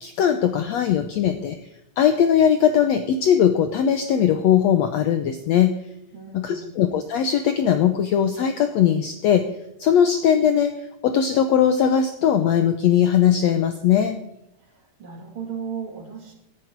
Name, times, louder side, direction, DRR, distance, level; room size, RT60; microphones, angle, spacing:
voice 1, 0.0-1.6 2.0-5.7 6.3-9.5 9.8-14.2, left 9 dB, 75° left, 8 dB, 1.6 m, -19 dB
voice 2, 6.1-6.8 14.7-16.3, right 7 dB, 40° right, 2 dB, 2.8 m, -36 dB
18.0 x 10.5 x 4.5 m, 0.82 s
omnidirectional pair, 3.9 m